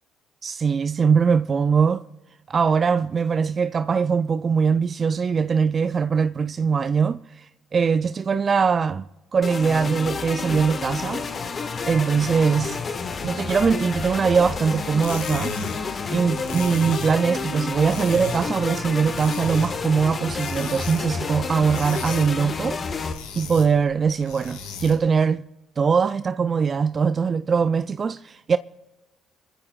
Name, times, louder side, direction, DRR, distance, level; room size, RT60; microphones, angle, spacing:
voice 1, 0.4-2.0 2.5-9.1 9.3-11.2 11.8-12.8 13.2-15.6 16.1-22.8 23.3-25.4 25.8-28.6, right 6 dB, 40° right, 0.4 m, -22 dB
sound 1, 9.4-23.1, left 4 dB, 40° left, 1.5 m, -30 dB
sound 2, 15.0-25.1, left 4 dB, 80° left, 2.5 m, -38 dB
26.5 x 15.0 x 2.3 m
hypercardioid pair, 50°, 0 cm